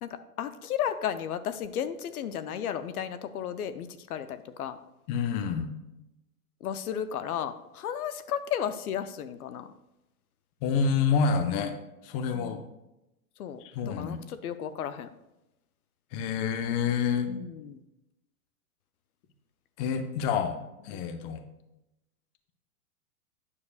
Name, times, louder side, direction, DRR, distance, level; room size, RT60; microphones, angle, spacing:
voice 1, 0.0-4.8 6.6-9.7 12.3-12.6 13.4-15.1 17.3-17.8 20.9-21.1, left 9 dB, 70° left, 12 dB, 0.7 m, -34 dB
voice 2, 5.1-5.7 10.6-11.7 12.0-12.6 13.6-14.2 16.1-17.3 19.8-20.6 20.8-21.4, left 6 dB, 30° left, 8 dB, 0.6 m, -28 dB
9.7 x 6.5 x 2.3 m, 0.91 s
hypercardioid pair, 125°, 46 cm